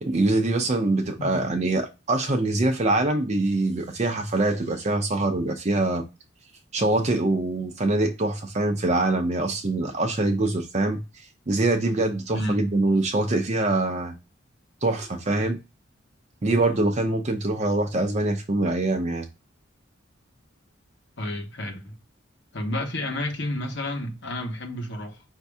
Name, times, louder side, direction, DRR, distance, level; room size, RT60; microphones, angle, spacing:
voice 1, 0.0-6.0 6.7-14.1 14.8-15.6 16.4-19.3, right 2 dB, 35° right, 0.6 m, -24 dB
voice 2, 21.2-22.0 22.5-25.2, left 1 dB, 60° left, 1.1 m, -31 dB
5.1 x 2.7 x 3.4 m
head